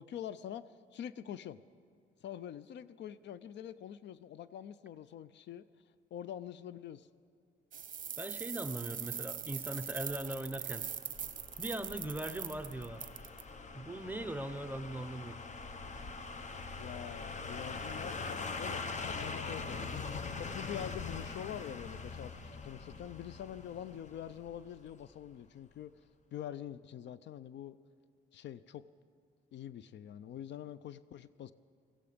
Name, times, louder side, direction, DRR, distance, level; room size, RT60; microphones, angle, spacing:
voice 1, 0.0-1.6 2.2-5.8 6.1-7.1 16.8-19.9 20.4-25.9 26.3-27.8 28.3-28.9 29.5-31.5, left 10 dB, 65° left, 17 dB, 0.5 m, -45 dB
sound 1, 7.7-13.4, right 8 dB, 45° right, 0.9 m, -41 dB
voice 2, 8.2-10.9 11.6-13.1 13.7-15.4, right 1 dB, 10° right, 7 dB, 0.8 m, -40 dB
sound 2, 10.1-25.0 25.3-25.4, left 4 dB, 35° left, 1.0 m, -43 dB
17.0 x 15.0 x 5.1 m, 2.1 s
cardioid pair, 90°, 20 cm